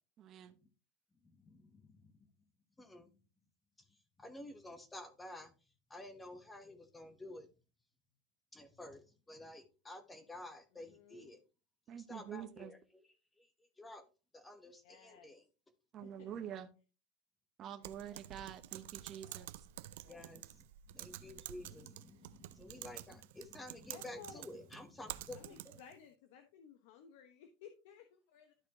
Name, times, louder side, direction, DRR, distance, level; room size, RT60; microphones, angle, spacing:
voice 1, 0.2-0.6 11.9-12.7 15.9-16.7 17.6-19.6, right 9 dB, 30° right, 5 dB, 0.8 m, -47 dB
voice 2, 1.2-2.1 2.8-3.1 4.2-5.5 5.9-7.5 8.5-11.4 12.1-12.8 13.4-13.5 13.8-14.0 14.3-15.4 20.1-20.6 20.9-25.8, left 1 dB, 10° left, 9 dB, 1.1 m, -51 dB
voice 3, 10.7-11.3 14.8-15.3 16.0-16.3 18.1-18.2 19.0-19.5 20.0-20.3 21.7-21.8 23.9-24.4 25.3-28.6, left 7 dB, 70° left, 6 dB, 1.0 m, -58 dB
Typing, 17.8-26.0, right 15 dB, 75° right, 0.4 m, -50 dB
12.5 x 4.3 x 2.9 m, 0.32 s
supercardioid pair, 155°, 0 cm